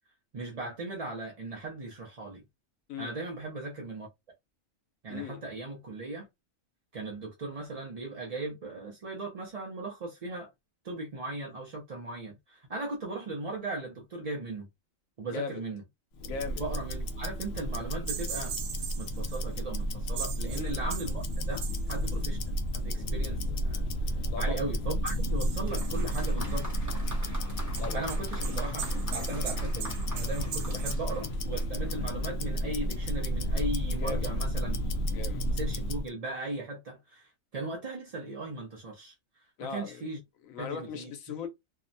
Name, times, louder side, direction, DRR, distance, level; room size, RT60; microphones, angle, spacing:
voice 1, 0.3-2.4 3.0-4.1 5.0-6.3 6.9-10.5 10.8-14.7 15.2-15.8 16.6-18.5 19.0-23.9 24.4-26.7 27.9-34.8 35.5-39.1 39.6-40.2 40.6-41.1, right 2 dB, 50° right, 0.4 m, -38 dB
voice 2, 5.1-5.4 15.3-15.6 16.2-16.6 20.5-20.9 24.3-24.7 27.8-28.1 33.9-34.3 35.1-35.5 39.6-40.1 40.4-41.5, left 5 dB, 80° left, 1.1 m, -38 dB
Tick-tock, 16.2-36.1, equal, 65° left, 0.7 m, -32 dB
sound 1, 18.1-19.4 19.8-19.9 20.1-22.5 25.1-26.8 27.8-30.9, right 8 dB, 80° right, 1.0 m, -40 dB
Applause, 25.6-32.1, equal, 15° right, 0.9 m, -46 dB
2.7 x 2.1 x 2.6 m
omnidirectional pair, 1.4 m